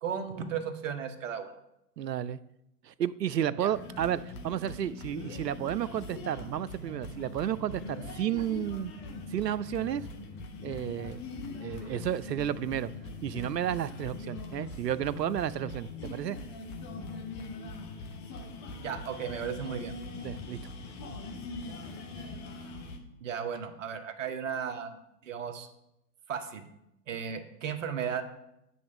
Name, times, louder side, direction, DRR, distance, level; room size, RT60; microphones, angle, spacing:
voice 1, 0.0-1.6 3.6-3.7 18.8-19.9 23.2-25.7 26.3-26.6 27.1-28.2, right 7 dB, 50° right, 8 dB, 1.0 m, -35 dB
voice 2, 2.0-2.4 2.9-8.9 9.3-10.0 10.6-12.9 13.2-16.4 20.2-20.6, right 10 dB, 85° right, 17 dB, 0.5 m, -32 dB
sound 1, 3.7-23.0, left 2 dB, 20° left, 0.6 m, -42 dB
9.3 x 3.2 x 5.3 m, 0.84 s
hypercardioid pair, 125°, 48 cm